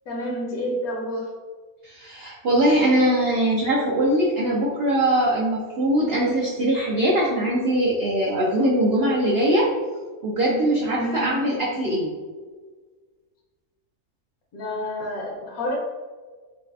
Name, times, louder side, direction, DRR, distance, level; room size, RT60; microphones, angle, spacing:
voice 1, 0.1-1.3 11.0-11.5 14.5-15.8, left 1 dB, 70° left, -2 dB, 1.2 m, -29 dB
voice 2, 1.8-9.7 10.2-12.1, right 1 dB, 65° right, -3 dB, 0.6 m, -21 dB
3.9 x 3.2 x 2.3 m, 1.4 s
omnidirectional pair, 1.6 m